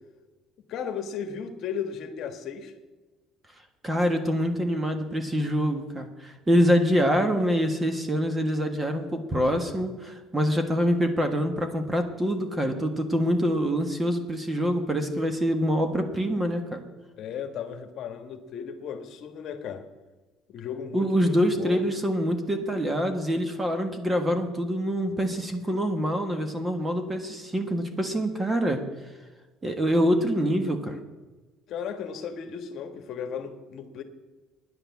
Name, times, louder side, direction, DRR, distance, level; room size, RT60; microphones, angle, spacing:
voice 1, 0.7-2.7 17.2-19.9 20.5-21.9 31.7-34.0, left 7 dB, 55° left, 7 dB, 1.3 m, -35 dB
voice 2, 3.8-16.8 20.9-28.8 29.6-31.0, equal, 15° right, 6 dB, 1.4 m, -25 dB
10.0 x 9.9 x 7.1 m, 1.2 s
cardioid pair, 130°, 0 cm